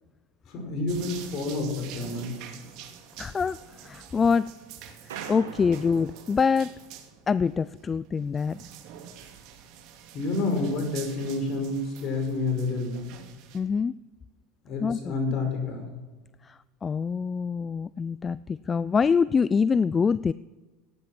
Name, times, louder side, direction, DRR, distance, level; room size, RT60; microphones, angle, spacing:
voice 1, 0.5-2.4 10.1-13.0 14.6-15.9, left 3 dB, 50° left, 4 dB, 5.1 m, -29 dB
sound 1, 0.9-13.6, right 9 dB, 60° right, 2.4 m, -46 dB
voice 2, 3.2-4.5 5.3-6.7 7.3-8.6 13.5-13.9 14.8-15.1 16.4-20.3, left 5 dB, 25° left, 18 dB, 0.3 m, -25 dB
sound 2, 5.1-7.5, right 8 dB, 90° right, 1.5 m, -44 dB
15.5 x 10.5 x 6.0 m, 1.3 s
supercardioid pair, 105°, 0 cm